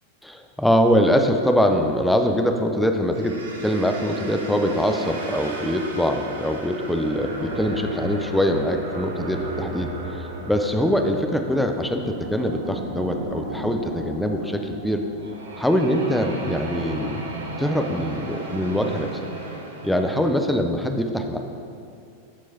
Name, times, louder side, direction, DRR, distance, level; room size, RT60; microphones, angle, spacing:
voice 1, 0.2-3.4 3.6-9.9 10.5-15.0 15.6-17.2 17.6-19.1 19.8-21.4, equal, 5° left, 5 dB, 0.5 m, -23 dB
sound 1, 3.1-20.1, right 2 dB, 75° right, 0.9 m, -34 dB
13.0 x 4.5 x 2.9 m, 2.5 s
figure-of-eight pair, 90°, 0 cm